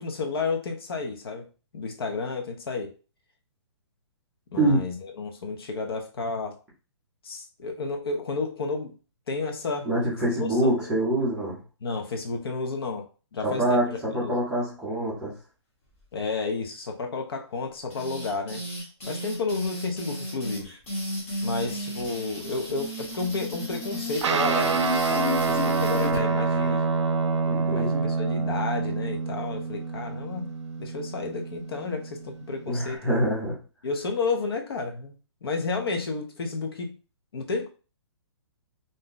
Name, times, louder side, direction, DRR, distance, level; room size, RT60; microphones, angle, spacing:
voice 1, 0.0-1.4 1.7-3.0 4.5-6.6 7.2-8.9 9.3-9.9 10.4-10.9 11.8-14.3 16.1-18.6 19.1-20.7 21.4-26.8 27.7-30.5 30.8-33.0 33.8-35.1 35.4-36.9 37.3-37.7, left 4 dB, 55° left, 3 dB, 0.7 m, -31 dB
voice 2, 9.8-11.6 13.4-15.3 27.5-28.1 32.7-33.6, right 1 dB, 5° right, -8 dB, 0.6 m, -25 dB
sound 1, 17.9-26.2, left 1 dB, 30° left, 0.9 m, -34 dB
Guitar, 24.2-33.0, right 4 dB, 80° right, 0.5 m, -27 dB
2.6 x 2.2 x 3.8 m, 0.34 s
hypercardioid pair, 175°, 15 cm